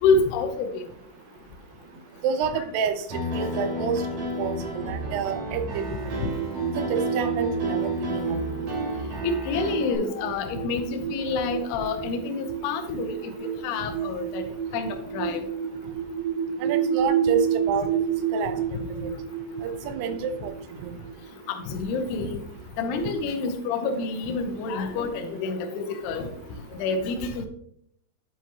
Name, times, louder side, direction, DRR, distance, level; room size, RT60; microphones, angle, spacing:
voice 1, 0.0-0.7 9.2-13.1 13.6-14.4 14.7-15.4 21.7-22.4 22.8-26.3 26.8-27.5, left 4 dB, 80° left, 6 dB, 2.8 m, -27 dB
voice 2, 2.2-6.0 6.8-8.4 16.6-17.9 18.3-18.6 19.0-19.1 19.6-20.5 20.8-20.9, right 7 dB, 80° right, 9 dB, 2.8 m, -29 dB
Piano, 3.1-9.9, left 1 dB, 55° right, 4.7 m, -32 dB
sound 1, 5.7-22.0, right 7 dB, 30° right, 1.7 m, -30 dB
9.6 x 8.0 x 2.9 m, 0.68 s
omnidirectional pair, 4.8 m